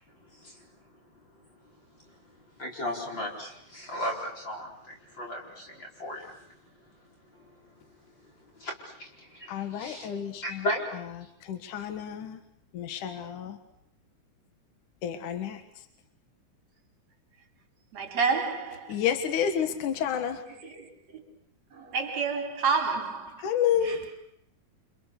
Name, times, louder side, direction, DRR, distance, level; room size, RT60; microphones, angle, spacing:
voice 1, 0.2-11.3, left 1 dB, 35° left, 5.2 m, -38 dB
voice 2, 9.5-10.6 11.4-12.4 12.7-13.6 15.0-15.8 18.9-20.4 23.4-24.1, left 9 dB, 70° left, 3.0 m, -30 dB
voice 3, 17.9-18.9 21.7-23.4, right 5 dB, 50° right, 4.9 m, -28 dB
30.0 x 26.5 x 6.7 m
omnidirectional pair, 3.9 m